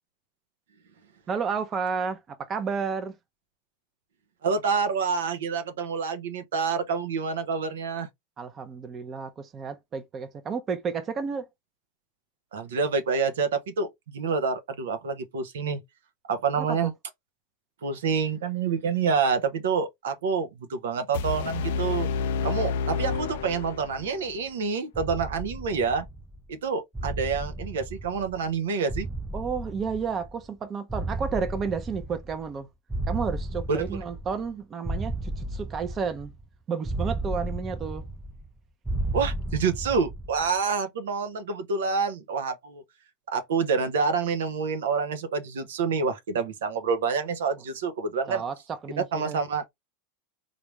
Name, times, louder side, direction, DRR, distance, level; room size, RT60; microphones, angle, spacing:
voice 1, 1.3-3.2 8.4-11.4 16.6-16.8 29.3-32.7 33.1-36.3 36.7-38.1 48.3-49.4, right 6 dB, 30° right, 0.7 m, -31 dB
voice 2, 4.4-8.1 12.5-15.8 16.3-16.9 17.8-22.1 22.4-26.1 26.5-29.1 33.7-33.8 39.1-42.8 43.3-48.4 49.1-49.7, right 5 dB, 80° right, 0.7 m, -27 dB
sound 1, 21.1-24.1, left 5 dB, 70° left, 0.4 m, -29 dB
sound 2, 23.1-24.3 24.9-26.5 26.9-28.6 28.9-30.5 30.9-32.6 32.9-34.5 34.9-36.4 36.9-38.5 38.9-40.5, right 1 dB, 5° right, 0.3 m, -34 dB
3.5 x 2.5 x 3.1 m
hypercardioid pair, 110°, 0 cm